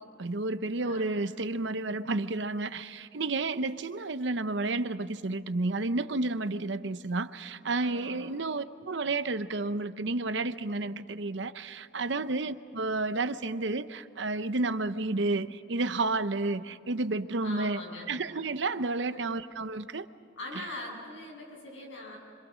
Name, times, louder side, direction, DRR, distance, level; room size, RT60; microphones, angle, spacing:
voice 1, 0.0-17.8 18.1-20.1 20.6-20.7, right 3 dB, 70° right, 12 dB, 0.8 m, -31 dB
voice 2, 7.8-8.4 12.1-12.2 17.4-18.1 19.0-19.2 20.4-22.2, left 2 dB, 85° left, -1 dB, 7.5 m, -42 dB
26.5 x 26.0 x 6.3 m, 2.5 s
head